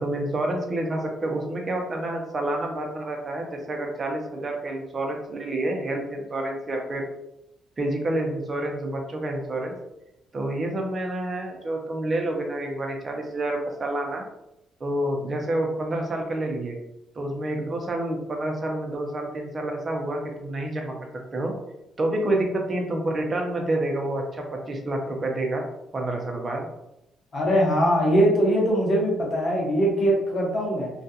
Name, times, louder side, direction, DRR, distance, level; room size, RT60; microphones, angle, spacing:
voice 1, 0.0-7.1 7.8-9.7 10.3-14.2 14.8-16.8 17.2-20.9 21.3-21.5 22.0-25.6 25.9-26.7, right 1 dB, 35° right, 1 dB, 0.6 m, -28 dB
voice 2, 27.3-30.9, equal, 45° left, -3 dB, 1.0 m, -21 dB
2.4 x 2.3 x 2.7 m, 0.85 s
cardioid pair, 90°, 0 cm